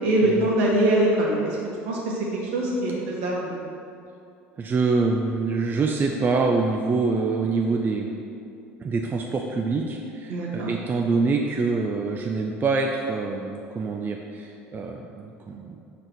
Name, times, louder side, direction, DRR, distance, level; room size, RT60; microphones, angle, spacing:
voice 1, 0.0-1.6 1.8-3.5 10.3-10.7, right 1 dB, 60° right, -4 dB, 1.5 m, -23 dB
voice 2, 4.6-8.2 8.8-15.8, right 4 dB, 25° right, 1 dB, 0.5 m, -25 dB
5.0 x 4.1 x 6.0 m, 2.6 s
figure-of-eight pair, 65°, 7 cm